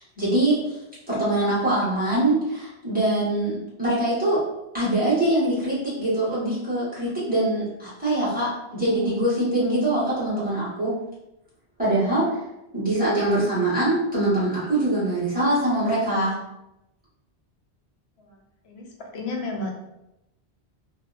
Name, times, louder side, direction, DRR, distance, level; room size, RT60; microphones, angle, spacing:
voice 1, 0.2-0.8 1.1-4.4 4.7-11.0 11.8-12.4 12.7-16.4, right 1 dB, 10° right, -11 dB, 1.2 m, -23 dB
voice 2, 19.1-19.7, left 2 dB, 70° left, 1 dB, 0.8 m, -31 dB
2.7 x 2.0 x 2.4 m, 0.90 s
omnidirectional pair, 1.1 m